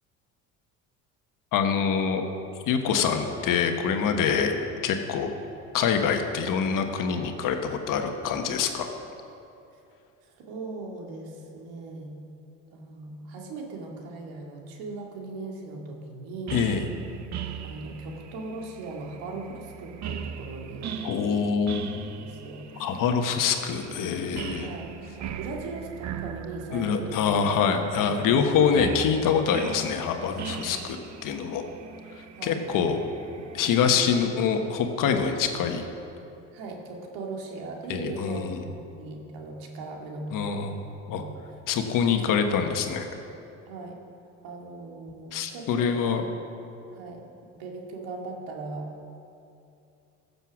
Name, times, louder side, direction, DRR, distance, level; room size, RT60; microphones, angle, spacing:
voice 1, 1.5-2.2 2.7-4.6 4.8-5.3 5.7-8.9 16.5-16.8 21.0-21.9 22.8-24.7 26.7-31.0 31.2-31.7 32.1-33.0 33.5-35.9 37.9-38.6 40.3-40.8 41.1-41.2 41.7-43.1 45.3-46.2, left 6 dB, 60° left, 5 dB, 1.3 m, -25 dB
voice 2, 10.2-12.2 12.7-16.7 17.6-21.3 21.9-22.9 24.6-24.9 25.2-27.3 28.0-28.9 30.7-30.8 32.3-33.0 36.5-40.8 41.1-41.3 43.7-43.9 44.4-45.9 46.2-46.3 46.9-47.2 47.5-48.9, right 3 dB, 75° right, 1 dB, 2.2 m, -39 dB
sound 1, 16.5-33.8, right 8 dB, 50° right, 0.8 m, -40 dB
15.0 x 6.9 x 6.2 m, 2.7 s
supercardioid pair, 85°, 36 cm